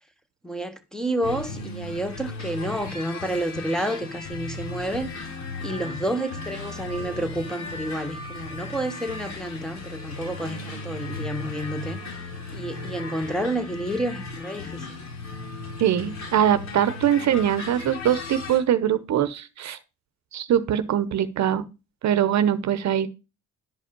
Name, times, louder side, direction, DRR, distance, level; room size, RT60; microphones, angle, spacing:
voice 1, 0.4-5.1 5.6-12.0 12.5-15.0, right 1 dB, ahead, 1.7 m, -30 dB
sound 1, 1.2-18.6, left 3 dB, 60° left, 4.7 m, -36 dB
voice 2, 15.8-19.8 20.3-21.6 22.0-23.1, right 10 dB, 65° right, 0.9 m, -22 dB
11.5 x 5.2 x 5.2 m
cardioid pair, 90°, 30 cm